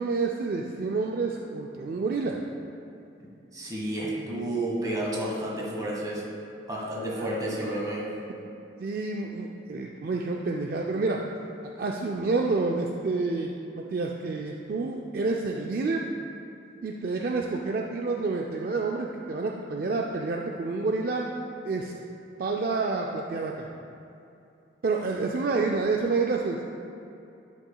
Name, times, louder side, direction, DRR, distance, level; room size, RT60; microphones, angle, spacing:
voice 1, 0.0-2.4 7.2-7.3 8.8-11.2 11.6-16.0 16.8-21.3 21.6-21.9 22.4-23.7 24.8-26.6, right 3 dB, 50° right, 0 dB, 0.4 m, -28 dB
voice 2, 3.5-6.2 6.7-8.0, right 1 dB, 20° right, -4 dB, 1.3 m, -31 dB
11.0 x 6.0 x 2.3 m, 2.7 s
head